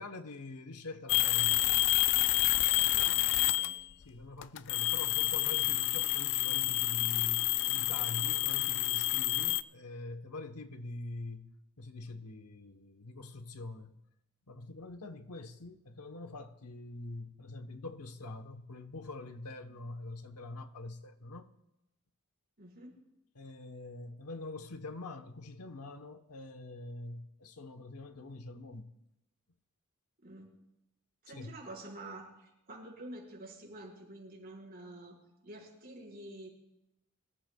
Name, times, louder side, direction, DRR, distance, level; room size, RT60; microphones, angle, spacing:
voice 1, 0.0-1.7 4.0-11.5 11.8-13.9 14.5-21.5 23.3-28.9 31.3-31.6, left 2 dB, 85° left, 1.1 m, -44 dB
sound 1, 1.1-3.9 4.4-9.6, left 16 dB, 55° left, 0.4 m, -29 dB
voice 2, 2.9-3.2 3.5-3.8 22.6-23.0 30.2-30.5 31.2-35.2 35.4-36.5, right 1 dB, 45° right, 4.7 m, -48 dB
24.0 x 13.5 x 2.3 m
head